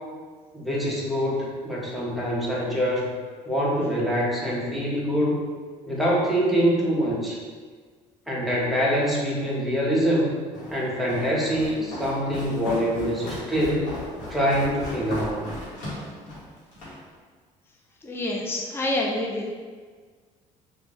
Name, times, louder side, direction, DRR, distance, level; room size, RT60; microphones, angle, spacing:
voice 1, 0.5-3.1 3.5-5.5 5.9-7.4 8.3-10.3 10.7-13.9 14.3-15.4, equal, ahead, -5 dB, 0.8 m, -24 dB
Walk footsteps, 10.5-17.0, left 1 dB, 60° left, 1.4 m, -37 dB
voice 2, 18.0-19.5, left 1 dB, 15° left, -1 dB, 0.5 m, -27 dB
3.4 x 2.6 x 3.0 m, 1.6 s
cardioid pair, 110°, 14 cm